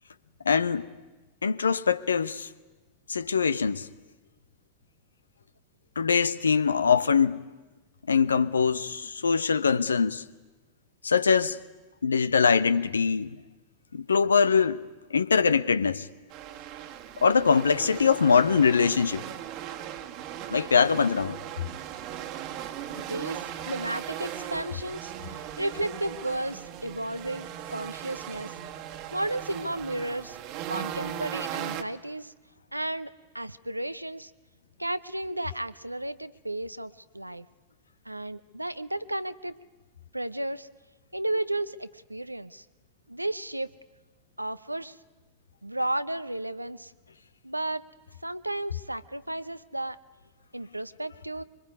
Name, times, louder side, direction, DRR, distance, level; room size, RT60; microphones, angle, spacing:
voice 1, 0.4-0.9 1.4-2.5 3.1-3.9 6.0-7.4 8.1-10.2 11.0-11.6 12.0-13.4 13.9-14.8 15.1-16.1 17.2-19.2 20.5-21.4, left 6 dB, 75° left, 0.9 m, -23 dB
sound 1, 16.3-31.8, right 11 dB, 40° right, 1.6 m, -38 dB
voice 2, 23.0-28.5 29.1-30.4 30.7-32.3 32.7-34.3 34.8-37.5 38.0-39.6 40.1-40.7 41.1-42.6 43.1-43.7 44.4-45.0 45.6-46.9 47.4-47.9 48.2-50.0 50.5-51.4, right 1 dB, 85° right, 0.8 m, -33 dB
25.0 x 23.5 x 9.7 m
figure-of-eight pair, 90°, 0 cm